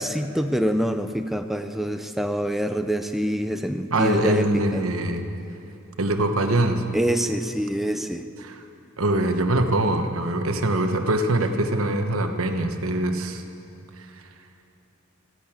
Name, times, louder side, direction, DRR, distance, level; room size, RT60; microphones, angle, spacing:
voice 1, 0.0-5.0 6.9-8.3, equal, ahead, 7 dB, 0.5 m, -26 dB
voice 2, 3.9-5.2 6.0-6.8 8.4-8.5 9.0-13.4 14.0-14.1, right 1 dB, 85° right, 6 dB, 1.1 m, -23 dB
15.0 x 10.5 x 8.6 m, 2.9 s
head